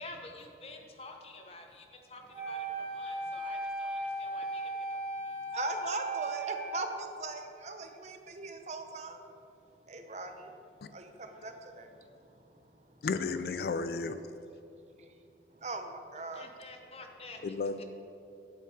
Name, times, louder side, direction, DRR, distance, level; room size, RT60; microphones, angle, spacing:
voice 1, 0.0-5.4 16.3-17.4 17.8-17.9, left 2 dB, 35° left, 3 dB, 0.9 m, -49 dB
Wind instrument woodwind instrument, 2.3-7.4, right 2 dB, 15° right, 2.0 m, -37 dB
voice 2, 5.5-9.2 9.9-10.3 10.9-11.0 11.4-11.9 15.6-15.9 16.1-16.5, right 3 dB, 40° right, 6 dB, 0.7 m, -39 dB
voice 3, 13.0-14.2 17.4-17.8, left 4 dB, 60° left, 11 dB, 0.3 m, -33 dB
8.6 x 8.0 x 4.8 m, 2.6 s
head